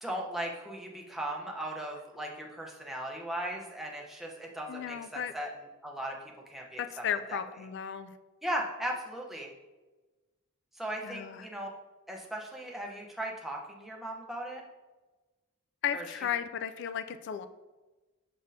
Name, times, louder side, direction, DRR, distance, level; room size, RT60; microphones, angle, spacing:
voice 1, 0.0-5.5 5.8-7.0 7.3-7.4 8.4-9.5 10.7-11.7 12.1-14.6 15.9-16.1, right 1 dB, ahead, -2 dB, 0.7 m, -37 dB
voice 2, 4.7-5.3 6.8-8.1 11.0-11.5 15.8-17.5, left 9 dB, 55° left, 10 dB, 0.3 m, -34 dB
6.3 x 6.1 x 2.7 m, 1.2 s
head